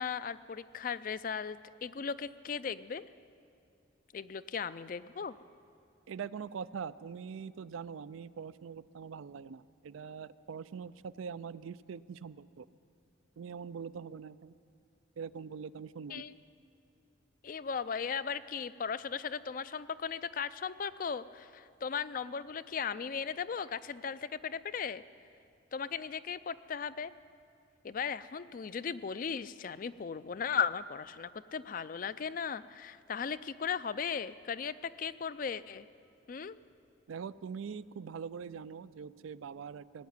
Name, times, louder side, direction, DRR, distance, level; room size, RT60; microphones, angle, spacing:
voice 1, 0.0-3.0 4.1-5.4 16.1-16.3 17.4-25.0 25.7-27.1 27.8-35.9 36.3-36.6, left 6 dB, 45° left, 15 dB, 0.4 m, -37 dB
voice 2, 6.1-12.7 13.4-14.6 15.2-16.3 37.1-40.1, right 6 dB, 85° right, 16 dB, 0.4 m, -43 dB
18.0 x 8.2 x 9.5 m, 2.6 s
head